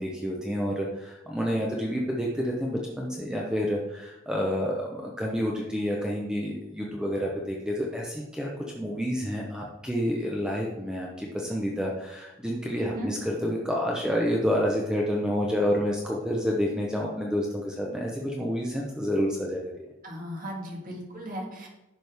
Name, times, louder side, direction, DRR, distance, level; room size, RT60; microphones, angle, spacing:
voice 1, 0.0-19.9, equal, 5° right, -2 dB, 0.8 m, -29 dB
voice 2, 12.8-13.1 20.0-21.7, equal, 40° right, -1 dB, 1.9 m, -36 dB
10.5 x 6.2 x 3.5 m, 0.94 s
head